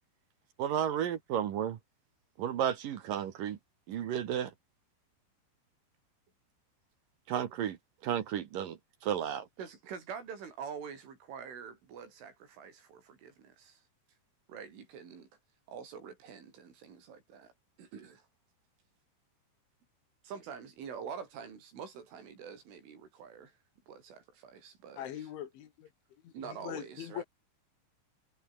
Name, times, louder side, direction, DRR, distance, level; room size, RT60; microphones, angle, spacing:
voice 1, 0.6-1.8 2.4-3.6 3.9-4.5 7.3-7.8 8.0-8.8 9.0-9.5, right 9 dB, 60° right, 2.6 m, -32 dB
voice 2, 9.6-13.8 14.5-15.3 15.7-17.5 17.8-18.3 20.2-23.6 23.9-25.3 26.3-27.2, right 6 dB, 85° right, 7.7 m, -46 dB
voice 3, 25.0-25.9 26.2-27.2, left 11 dB, 80° left, 4.7 m, -42 dB
omnidirectional pair, 5.5 m